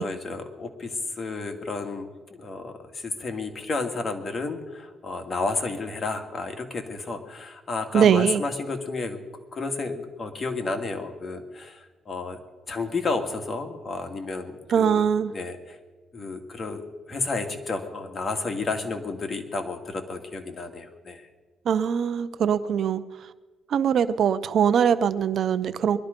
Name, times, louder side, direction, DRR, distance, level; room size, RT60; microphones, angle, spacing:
voice 1, 0.0-2.1 2.4-9.2 9.5-12.4 12.7-14.5 14.8-15.1 15.3-15.8 16.1-16.8 17.1-21.3, left 3 dB, 35° left, 5 dB, 2.1 m, -31 dB
voice 2, 7.9-8.4 14.7-15.3 21.6-23.0 23.7-26.0, right 8 dB, 65° right, 14 dB, 0.7 m, -22 dB
21.0 x 12.5 x 5.2 m, 1.3 s
cardioid pair, 90°, 0 cm